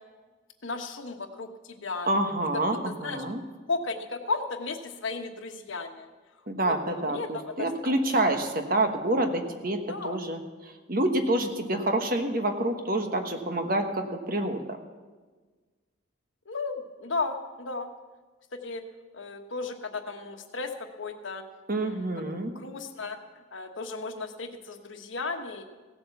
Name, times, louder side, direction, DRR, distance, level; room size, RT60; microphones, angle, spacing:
voice 1, 0.6-2.1 2.5-3.2 3.7-6.1 6.6-7.4 7.8-7.9 8.3-8.4 9.9-10.2 16.5-17.9 18.5-18.8 19.1-21.4 21.8-23.2 23.5-25.6, left 3 dB, 75° left, 5 dB, 1.3 m, -35 dB
voice 2, 2.1-3.4 6.5-10.4 10.9-14.8 21.7-22.5, right 1 dB, 45° right, 6 dB, 1.3 m, -27 dB
16.5 x 7.9 x 7.1 m, 1.4 s
head